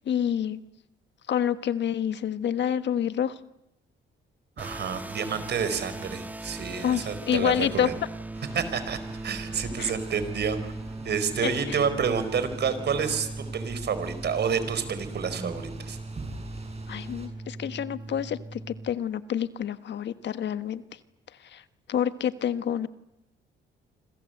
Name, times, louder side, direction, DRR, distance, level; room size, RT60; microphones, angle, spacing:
voice 1, 0.0-0.6 1.3-3.4 6.8-7.9 9.8-9.9 11.4-11.8 16.9-20.8 21.4-21.6 21.9-22.9, left 9 dB, 65° left, 12 dB, 1.4 m, -28 dB
sound 1, 4.6-18.9, right 2 dB, 10° right, 1.5 m, -39 dB
voice 2, 4.6-7.9 8.5-9.0 9.2-10.7 11.0-16.0, right 6 dB, 60° right, 12 dB, 4.7 m, -29 dB
sound 2, 8.3-17.3, right 2 dB, 30° right, 7.9 m, -44 dB
27.0 x 26.0 x 8.0 m, 0.85 s
cardioid pair, 90°, 20 cm